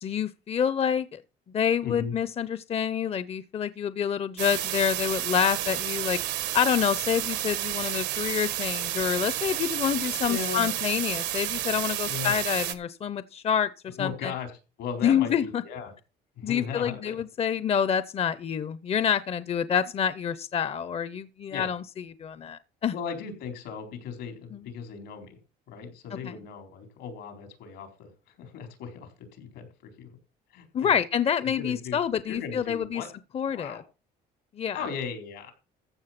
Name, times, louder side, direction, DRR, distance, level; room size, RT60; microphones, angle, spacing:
voice 1, 0.0-1.2 1.5-6.2 6.5-14.3 15.0-15.6 16.4-21.8 22.2-22.9 24.5-24.6 26.2-26.3 30.7-33.0 33.3-33.8 34.6-34.8, left 8 dB, 35° left, 0.7 m, -27 dB
voice 2, 1.8-2.1 10.2-10.7 12.1-12.3 13.9-14.5 14.8-15.9 16.4-17.2 21.5-21.7 22.9-25.4 25.7-30.1 30.5-30.9 31.6-32.0 32.2-33.1 33.5-33.8 34.7-35.5, left 6 dB, 85° left, 4.3 m, -37 dB
sound 1, 4.4-12.7, right 13 dB, 85° right, 1.4 m, -31 dB
14.5 x 6.6 x 5.9 m
cardioid pair, 110°, 17 cm